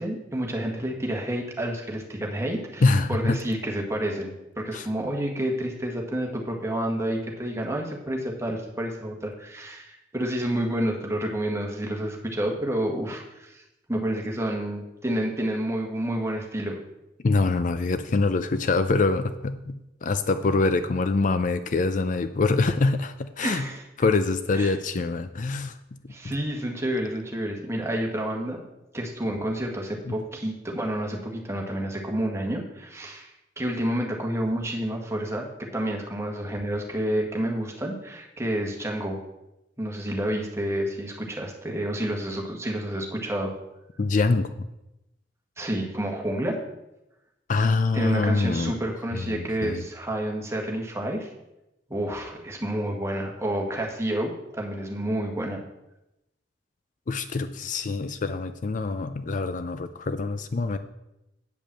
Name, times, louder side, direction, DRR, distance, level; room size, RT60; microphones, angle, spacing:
voice 1, 0.0-13.6 13.9-16.8 23.4-23.8 24.5-24.7 26.1-28.6 28.9-33.3 33.6-39.2 39.8-43.5 45.6-46.6 47.9-51.3 51.9-55.6, right 1 dB, 15° right, 0 dB, 1.5 m, -29 dB
voice 2, 2.8-3.4 4.7-4.9 17.2-23.7 24.0-25.7 26.2-26.4 30.1-30.2 44.0-44.5 47.5-48.7 49.1-49.8 57.1-60.8, left 3 dB, 45° left, 10 dB, 0.4 m, -25 dB
8.6 x 5.2 x 7.5 m, 0.91 s
head